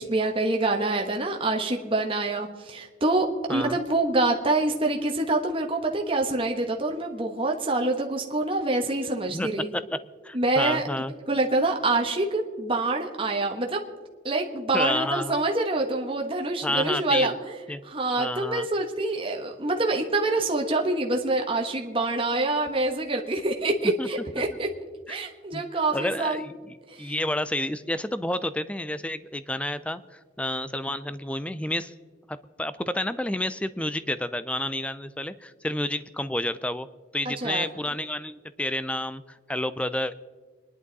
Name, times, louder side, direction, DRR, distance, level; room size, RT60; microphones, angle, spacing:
voice 1, 0.0-9.7 10.3-10.8 11.3-13.8 14.2-17.5 17.8-24.7 25.1-26.4 26.9-27.1 37.2-37.7, right 2 dB, 30° right, 2 dB, 1.3 m, -26 dB
voice 2, 9.3-10.0 10.2-11.1 14.7-15.3 16.6-17.3 17.7-17.8 18.2-18.7 23.8-24.1 24.4-24.5 25.1-25.2 25.5-25.6 25.9-31.9 32.3-36.9 37.1-40.1, left 1 dB, 5° left, 14 dB, 0.4 m, -30 dB
26.5 x 11.0 x 4.1 m, 1.5 s
head